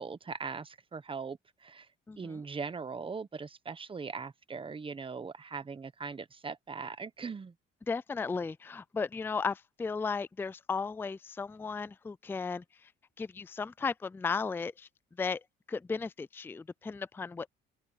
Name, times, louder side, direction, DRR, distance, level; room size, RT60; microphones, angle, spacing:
voice 1, 0.0-1.9 2.2-7.5, right 5 dB, 25° right, 1.2 m, -40 dB
voice 2, 7.9-12.6 13.2-14.9 15.2-15.4 15.7-17.5, left 5 dB, 10° left, 0.4 m, -35 dB
open air
cardioid pair, 100°, 21 cm